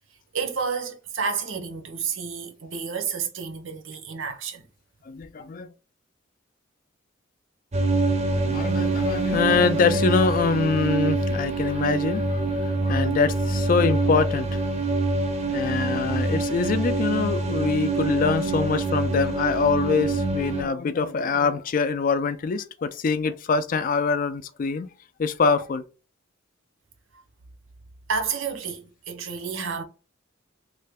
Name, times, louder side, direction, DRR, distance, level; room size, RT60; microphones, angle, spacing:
voice 1, 0.3-4.7 28.1-29.8, right 5 dB, 75° right, 0.7 m, -30 dB
voice 2, 5.1-5.7 8.4-14.6 15.5-24.9 25.2-25.8, left 5 dB, 45° left, 0.3 m, -24 dB
sound 1, 7.7-20.6, right 3 dB, 35° right, 0.5 m, -25 dB
3.3 x 2.1 x 3.4 m
head